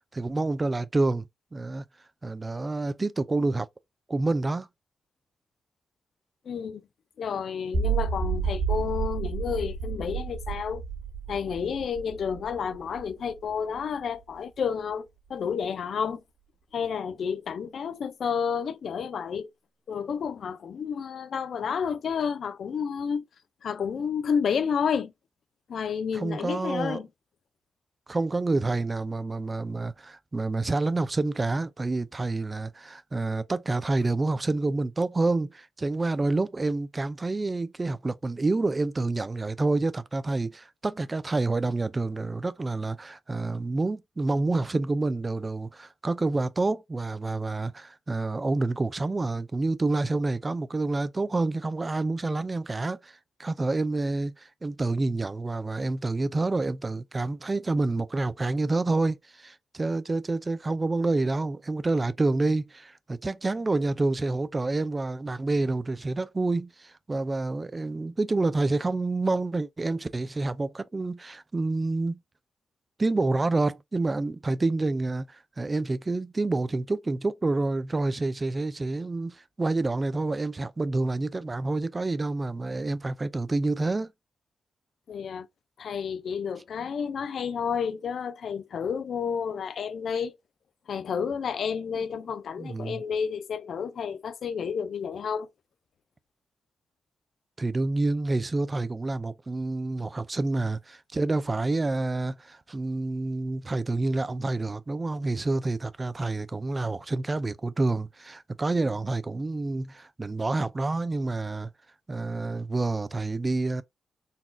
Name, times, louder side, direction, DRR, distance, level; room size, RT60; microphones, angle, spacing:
voice 1, 0.1-1.2 1.5-1.8 2.2-3.7 4.1-4.7 26.1-27.0 28.1-72.2 73.0-84.1 92.6-93.0 97.6-111.7 112.1-113.8, right 2 dB, 25° right, 0.3 m, -28 dB
voice 2, 6.5-6.8 7.2-10.8 11.3-16.2 16.7-19.5 19.9-23.2 23.6-25.1 25.7-27.1 85.1-85.5 85.8-90.4 90.9-95.5, left 6 dB, 65° left, 0.4 m, -30 dB
sound 1, 7.7-13.8, right 6 dB, 55° right, 1.6 m, -31 dB
4.0 x 2.3 x 2.5 m
cardioid pair, 95°, 0 cm